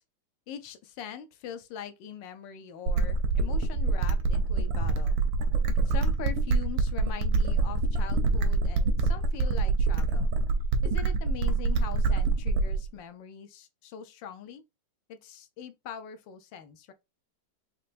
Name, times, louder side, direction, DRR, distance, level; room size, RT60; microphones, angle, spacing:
voice 1, 0.5-5.2 5.9-10.3 10.8-14.6 15.1-16.9, left 8 dB, 75° left, 1.3 m, -42 dB
sound 1, 2.9-12.9, right 3 dB, 85° right, 1.4 m, -25 dB
4.5 x 3.0 x 2.4 m
omnidirectional pair, 2.1 m